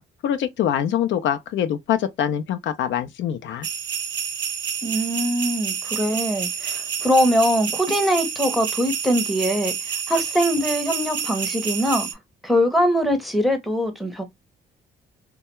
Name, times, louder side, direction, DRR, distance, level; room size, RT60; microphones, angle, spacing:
voice 1, 0.2-3.7, left 10 dB, 70° left, 0.4 m, -24 dB
sound 1, 3.6-12.1, right 7 dB, 65° right, 0.6 m, -29 dB
voice 2, 4.8-9.7 10.1-12.1 12.4-14.2, equal, ahead, 0.6 m, -22 dB
2.2 x 2.1 x 2.9 m
cardioid pair, 90°, 20 cm